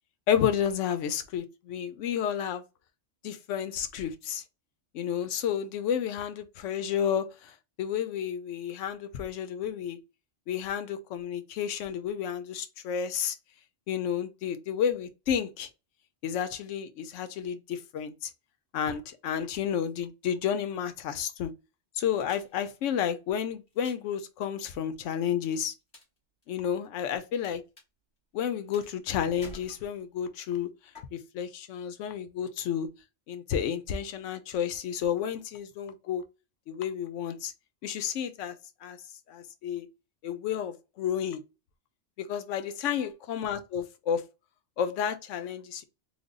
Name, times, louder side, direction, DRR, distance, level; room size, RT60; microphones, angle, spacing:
voice 1, 0.3-2.6 3.2-4.4 4.9-7.5 7.8-10.0 10.5-13.3 13.9-15.7 16.2-18.3 18.7-21.5 22.0-25.7 26.5-27.6 28.3-30.7 31.1-32.9 33.3-36.2 36.7-37.5 37.8-38.5 38.8-39.0 39.3-39.9 40.2-41.4 42.2-44.2 44.8-45.8, left 8 dB, 90° left, 0.9 m, -31 dB
sound 1, 22.2-23.1 23.7-24.2 25.5-26.2 26.4-27.5 27.8-27.9 28.7-29.1 29.4-30.2 30.9-31.0, left 2 dB, 35° left, 1.5 m, -49 dB
3.3 x 2.1 x 3.6 m
omnidirectional pair, 1.2 m